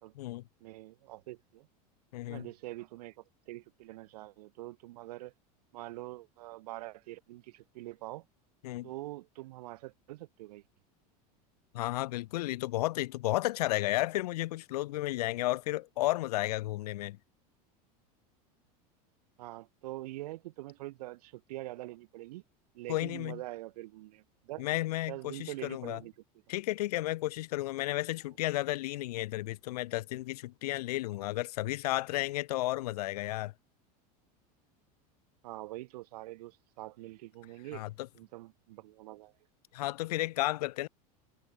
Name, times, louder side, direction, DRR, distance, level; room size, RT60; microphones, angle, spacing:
voice 1, 0.6-1.7 2.3-5.3 5.7-8.3 8.8-10.6 19.4-22.4 22.7-24.8 25.1-26.1 35.4-37.8 38.1-39.3, right 18 dB, 80° right, 2.5 m, -44 dB
voice 2, 2.1-2.5 8.6-8.9 11.7-17.2 22.9-23.4 24.6-26.0 26.5-33.5 37.7-38.1 39.7-40.9, left 17 dB, 85° left, 1.6 m, -33 dB
supercardioid pair, 120°, 20 cm